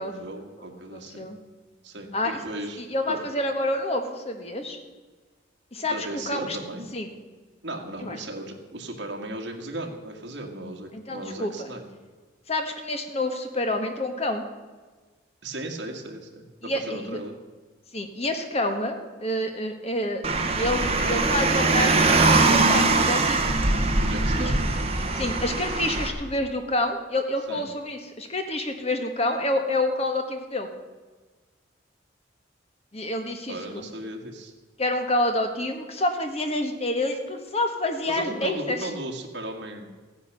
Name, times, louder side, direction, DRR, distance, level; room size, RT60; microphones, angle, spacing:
voice 1, 0.0-1.3 1.8-2.8 3.1-3.2 5.8-6.9 7.6-11.9 15.4-17.4 24.0-24.6 27.5-27.7 33.5-34.5 38.1-39.9, right 1 dB, 60° right, 2 dB, 1.9 m, -36 dB
voice 2, 0.9-1.4 2.1-2.4 2.8-4.8 5.7-6.6 6.9-7.1 8.0-8.2 10.9-11.7 12.5-14.4 16.6-17.2 17.9-20.2 20.5-23.6 24.4-24.5 25.1-30.7 32.9-33.8 34.8-38.9, left 1 dB, 30° left, 5 dB, 1.4 m, -28 dB
Car, 20.2-26.1, right 3 dB, 30° right, 1.3 m, -22 dB
14.5 x 9.8 x 6.7 m, 1.3 s
head